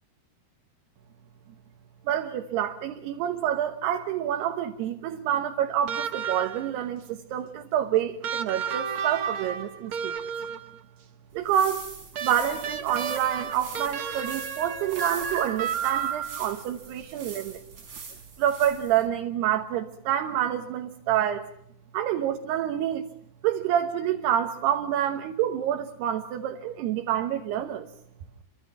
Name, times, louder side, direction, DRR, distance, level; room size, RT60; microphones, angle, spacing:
voice 1, 2.1-10.2 11.3-11.9 12.2-17.6 18.4-21.5 21.9-23.1 23.4-27.9, right 10 dB, 85° right, 4 dB, 3.3 m, -27 dB
sound 1, 5.9-6.8 8.2-10.8 12.1-16.6 18.0-18.1, right 7 dB, 70° right, 1.2 m, -32 dB
sound 2, 11.3-19.1, right 5 dB, 50° right, 6.6 m, -43 dB
30.0 x 24.5 x 5.9 m, 0.70 s
omnidirectional pair, 4.6 m